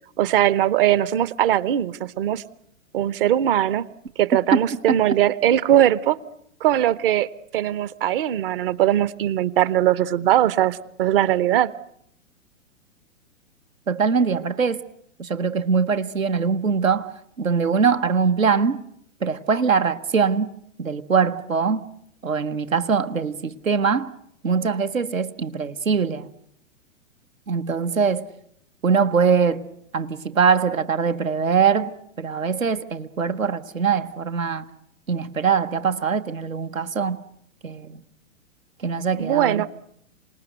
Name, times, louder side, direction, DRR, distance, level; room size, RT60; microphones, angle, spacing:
voice 1, 0.2-2.4 2.9-3.9 4.2-6.2 6.6-7.3 7.5-11.7 39.2-39.7, right 12 dB, 45° right, 0.9 m, -20 dB
voice 2, 13.9-14.8 15.2-18.8 19.2-20.5 20.8-21.9 22.2-24.1 24.4-26.3 27.5-28.3 28.8-34.6 35.1-37.2 37.6-38.0 38.8-39.6, right 6 dB, 80° right, 1.2 m, -22 dB
27.0 x 18.5 x 7.9 m
figure-of-eight pair, 110°, 39 cm